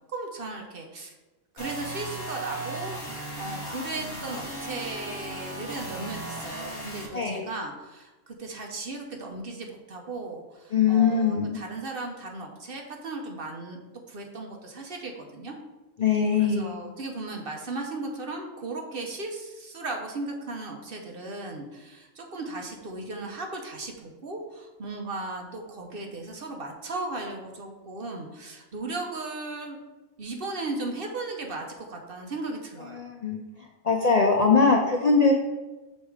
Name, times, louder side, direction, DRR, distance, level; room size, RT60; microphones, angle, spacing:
voice 1, 0.1-1.1 1.5-13.8 14.1-15.5 16.4-29.8 30.2-33.0, right 2 dB, 50° right, 2 dB, 0.9 m, -36 dB
sound 1, 1.6-7.1, right 1 dB, 55° left, 1.4 m, -36 dB
voice 2, 7.1-7.5 10.7-11.6 16.0-16.8 32.9-33.4 33.8-35.3, left 5 dB, 75° left, 1 dB, 0.3 m, -21 dB
6.4 x 3.4 x 4.7 m, 1.1 s
omnidirectional pair, 1.5 m